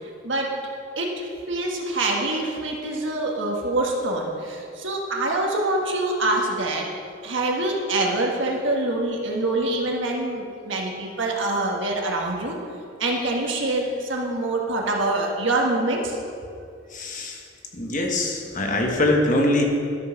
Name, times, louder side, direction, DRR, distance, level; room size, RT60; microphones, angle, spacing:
voice 1, 0.2-0.6 1.0-6.9 7.2-12.6 13.0-16.2, right 2 dB, 70° right, -1 dB, 1.5 m, -25 dB
voice 2, 16.9-17.4 17.7-19.6, left 1 dB, 40° left, 1 dB, 1.3 m, -23 dB
12.5 x 5.6 x 5.8 m, 2.4 s
head